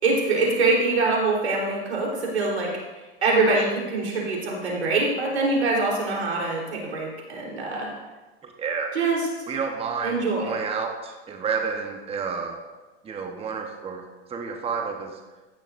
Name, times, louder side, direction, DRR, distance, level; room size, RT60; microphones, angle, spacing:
voice 1, 0.0-2.7 3.2-7.9 8.9-9.3 10.0-10.5, right 3 dB, 90° right, -2 dB, 3.7 m, -24 dB
voice 2, 8.4-8.9 9.5-12.6 13.0-14.0 14.3-15.2, right 5 dB, 20° right, 3 dB, 1.0 m, -30 dB
15.0 x 10.0 x 2.6 m, 1.2 s
hypercardioid pair, 110°, 32 cm